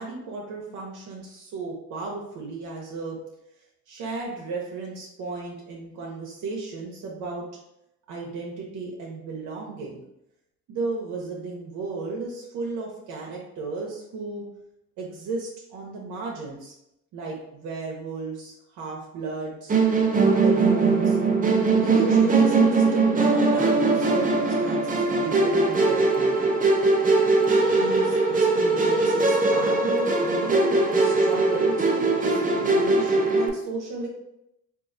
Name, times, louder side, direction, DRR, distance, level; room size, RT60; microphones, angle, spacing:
voice 1, 0.0-3.2 3.9-7.4 8.1-10.0 10.7-14.5 15.0-16.7 17.1-19.7 20.2-21.2 21.8-26.7 27.6-28.2 28.5-34.1, right 3 dB, 90° right, -3 dB, 0.7 m, -34 dB
Musical instrument, 19.7-33.5, right 3 dB, 25° right, 0.5 m, -21 dB
3.7 x 2.4 x 2.5 m, 0.83 s
cardioid pair, 90°, 30 cm